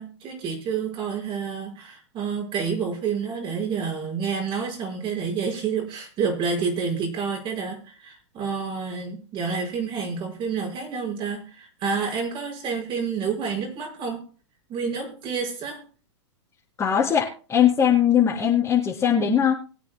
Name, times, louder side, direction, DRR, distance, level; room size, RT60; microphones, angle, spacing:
voice 1, 0.0-14.2 14.7-15.9, right 5 dB, 35° right, 5.4 m, -29 dB
voice 2, 16.8-19.5, left 9 dB, 20° left, 3.3 m, -20 dB
23.5 x 9.1 x 2.2 m
hypercardioid pair, 110°, 15 cm